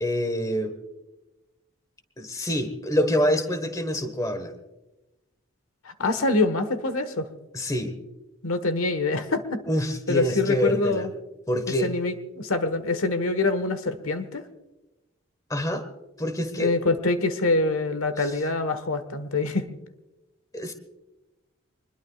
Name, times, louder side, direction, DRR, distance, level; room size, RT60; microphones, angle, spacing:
voice 1, 0.0-0.7 2.2-4.5 7.5-7.9 9.7-11.1 11.5-11.9 15.5-15.8 16.2-16.7 18.2-18.3 20.5-20.7, equal, 15° left, 9 dB, 1.4 m, -26 dB
voice 2, 5.8-7.3 8.4-9.6 10.1-11.1 11.8-14.4 16.6-19.7, left 2 dB, 85° left, 11 dB, 1.4 m, -25 dB
25.0 x 21.0 x 2.4 m, 1.0 s
head